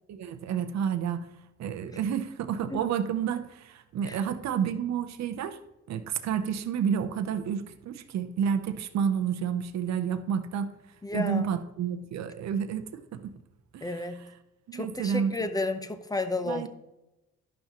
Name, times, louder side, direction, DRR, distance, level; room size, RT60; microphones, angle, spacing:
voice 1, 0.1-1.3 1.6-5.6 5.9-10.8 11.1-13.3 13.7-13.9 14.7-15.5 16.4-16.7, right 7 dB, 60° right, 9 dB, 0.7 m, -30 dB
voice 2, 11.0-11.5 13.8-14.3 14.7-16.7, left 2 dB, 10° left, 9 dB, 0.7 m, -32 dB
11.5 x 5.7 x 3.0 m, 0.95 s
cardioid pair, 90°, 30 cm